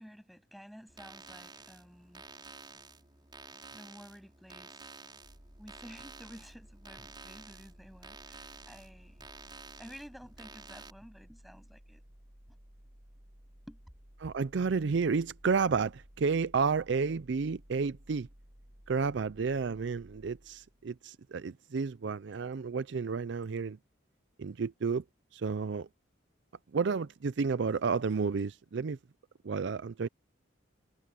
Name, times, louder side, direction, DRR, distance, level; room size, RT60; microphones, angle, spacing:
voice 1, 0.0-2.2 3.7-4.8 5.6-9.3 9.8-12.0 13.7-13.8, equal, ahead, 8.0 m, -52 dB
sound 1, 0.9-10.9, right 4 dB, 20° right, 5.7 m, -51 dB
sound 2, 5.2-21.0, equal, 45° right, 3.5 m, -57 dB
voice 2, 14.2-18.3 18.9-23.8 24.4-25.0 25.3-25.9 26.7-29.0 29.4-30.1, right 5 dB, 65° right, 0.4 m, -31 dB
head